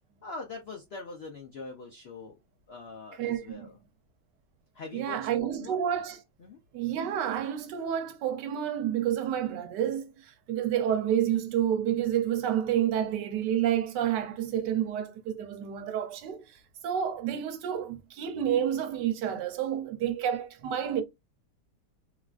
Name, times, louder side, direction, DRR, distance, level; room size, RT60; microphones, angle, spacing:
voice 1, 0.2-2.3 2.7-3.7 4.7-5.3 5.6-5.8 6.4-6.6, left 3 dB, 80° left, 0.5 m, -42 dB
voice 2, 3.2-3.7 4.9-6.2 6.7-21.0, right 10 dB, 85° right, 1.3 m, -29 dB
3.5 x 2.4 x 2.3 m
omnidirectional pair, 1.8 m